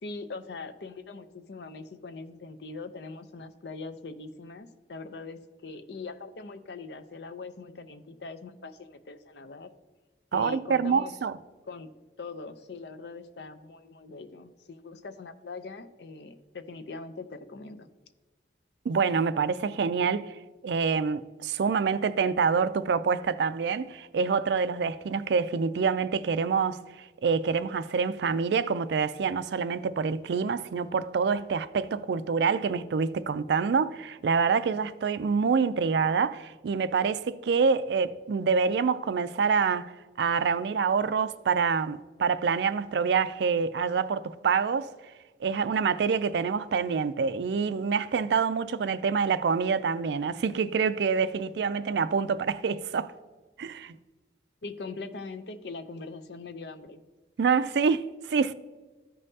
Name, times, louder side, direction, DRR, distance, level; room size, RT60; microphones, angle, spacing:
voice 1, 0.0-9.7 10.3-11.1 11.7-11.9 12.2-17.9 54.6-57.0, left 3 dB, 70° left, 0.6 m, -42 dB
voice 2, 10.3-11.3 18.9-20.3 20.6-39.9 40.2-44.9 45.4-53.1 53.6-54.0 57.4-58.5, right 5 dB, 70° right, 0.4 m, -26 dB
13.5 x 5.4 x 2.7 m
head